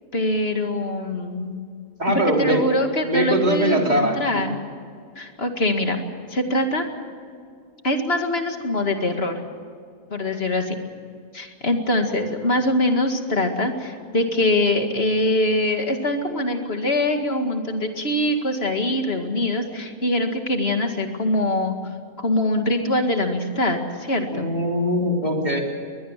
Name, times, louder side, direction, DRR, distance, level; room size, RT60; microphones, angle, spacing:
voice 1, 0.1-1.6 2.1-4.6 5.2-6.0 6.3-6.9 7.8-9.4 10.1-10.8 11.3-21.7 22.2-24.5, left 1 dB, 45° left, 5 dB, 2.4 m, -23 dB
voice 2, 2.0-2.7 3.1-4.5 24.3-25.6, equal, 30° right, 0 dB, 3.7 m, -22 dB
21.5 x 21.5 x 7.5 m, 2.2 s
omnidirectional pair, 1.5 m